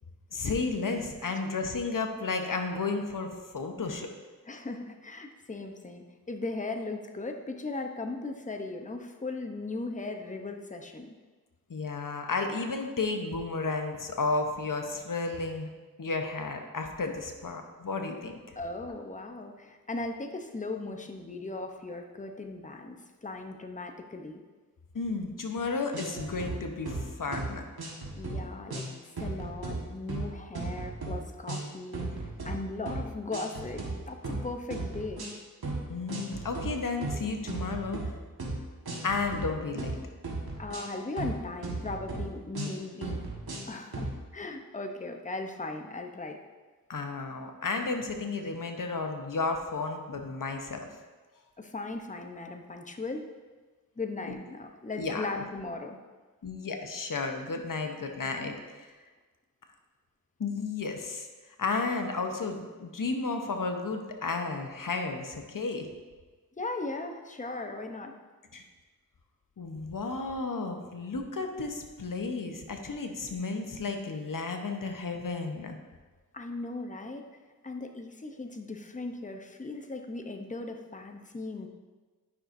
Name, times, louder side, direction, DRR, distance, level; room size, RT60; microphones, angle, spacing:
voice 1, 0.3-4.1 11.7-15.7 16.0-18.4 24.9-27.7 35.9-38.0 39.0-39.9 46.9-50.8 55.0-55.2 56.4-58.9 60.4-61.3 61.6-65.9 68.5-68.6 69.6-75.8, left 3 dB, 60° left, 4 dB, 0.9 m, -33 dB
voice 2, 4.5-11.1 18.6-24.4 28.2-32.1 32.4-35.3 39.8-39.9 40.6-43.2 43.7-46.4 51.6-53.3 54.0-56.0 66.6-68.2 76.3-77.3 77.6-81.7, left 3 dB, 20° left, 4 dB, 0.7 m, -38 dB
sound 1, 25.9-26.6 26.9-27.1 27.3-27.5 27.8-28.4 28.7-28.9 29.2-29.8 30.1-30.3 30.5-31.2 31.5-31.7 31.9-32.5 32.9-33.0 33.3-33.9 34.2-34.4 34.7-35.3 35.6-35.8 36.1-36.7 37.0-38.1 38.4-38.6 38.9-39.4 39.8-40.0 40.2-41.4 41.6-42.2 42.5-42.7 43.0-43.7 43.9-44.1, right 3 dB, 80° right, 1.5 m, -35 dB
9.7 x 5.8 x 2.6 m, 1.3 s
cardioid pair, 45°, 37 cm